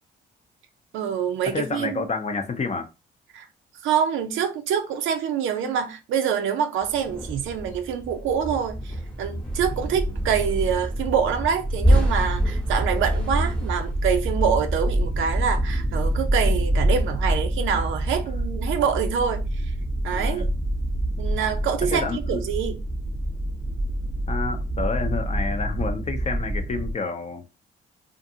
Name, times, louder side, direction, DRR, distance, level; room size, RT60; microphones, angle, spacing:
voice 1, 0.9-2.1 3.3-3.5 3.8-19.7 20.0-20.5 21.2-22.8, right 7 dB, 80° right, 0.5 m, -26 dB
voice 2, 1.5-2.9 20.1-20.5 21.9-22.4 24.3-27.4, left 4 dB, 35° left, 0.6 m, -29 dB
sound 1, 6.8-17.5, right 1 dB, 5° left, 0.9 m, -30 dB
sound 2, 9.5-26.9, right 1 dB, 10° right, 0.6 m, -26 dB
2.5 x 2.5 x 2.7 m
cardioid pair, 90°, 20 cm